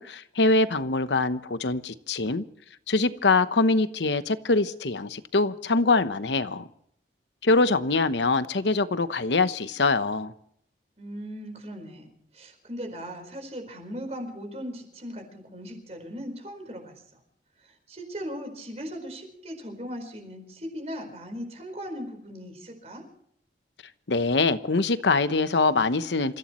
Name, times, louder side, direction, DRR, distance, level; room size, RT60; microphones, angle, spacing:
voice 1, 0.0-2.4 2.9-6.7 7.4-10.3 24.1-26.4, left 3 dB, 85° left, 0.9 m, -24 dB
voice 2, 11.0-17.2 17.6-23.0, equal, 35° right, 4.5 m, -38 dB
28.0 x 16.0 x 3.1 m
head